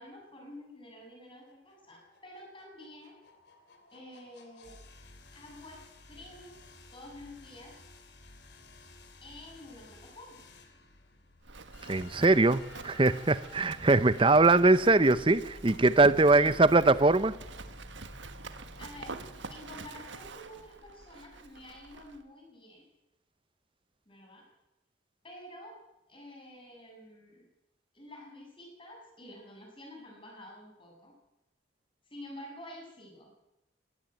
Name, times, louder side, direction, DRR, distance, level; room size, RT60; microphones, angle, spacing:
voice 1, 0.0-3.2 3.9-4.8 5.3-6.5 6.9-7.7 9.2-10.4 14.1-14.7 16.3-16.8 18.8-19.2 19.5-22.8 24.1-24.5 25.2-25.8 26.1-27.5 27.9-31.1 32.1-33.3, left 1 dB, 25° left, 7.3 m, -49 dB
sound 1, 1.0-19.9, left 1 dB, 60° left, 3.0 m, -53 dB
Livestock farm animals working animals, 11.4-22.2, right 3 dB, 75° right, 1.5 m, -46 dB
voice 2, 11.9-17.4, right 3 dB, 25° right, 0.7 m, -22 dB
17.5 x 17.5 x 9.2 m
head